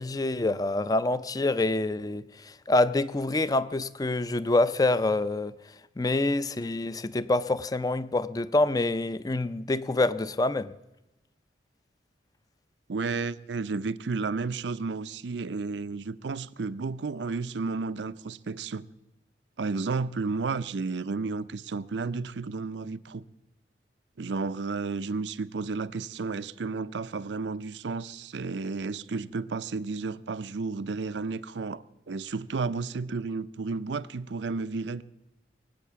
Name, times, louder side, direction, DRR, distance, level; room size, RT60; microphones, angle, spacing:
voice 1, 0.0-5.5 6.0-10.7, left 2 dB, 20° left, 0.4 m, -26 dB
voice 2, 12.9-18.9 19.6-23.2 24.2-35.0, right 4 dB, 80° right, 0.6 m, -32 dB
22.5 x 8.2 x 6.9 m
head